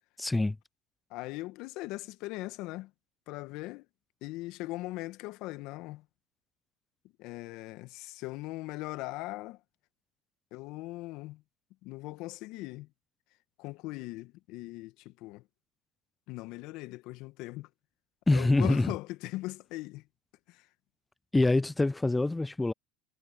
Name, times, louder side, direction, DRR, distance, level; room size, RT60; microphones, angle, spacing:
voice 1, 0.2-0.6 18.3-18.9 21.3-22.7, left 2 dB, 10° left, 0.3 m, -25 dB
voice 2, 1.1-2.9 3.3-3.9 4.2-6.0 7.2-9.6 10.5-11.4 11.8-12.9 13.6-15.4 16.3-17.7 18.3-20.0 20.5-20.7, left 19 dB, 65° left, 1.7 m, -40 dB
hypercardioid pair, 80°, 0 cm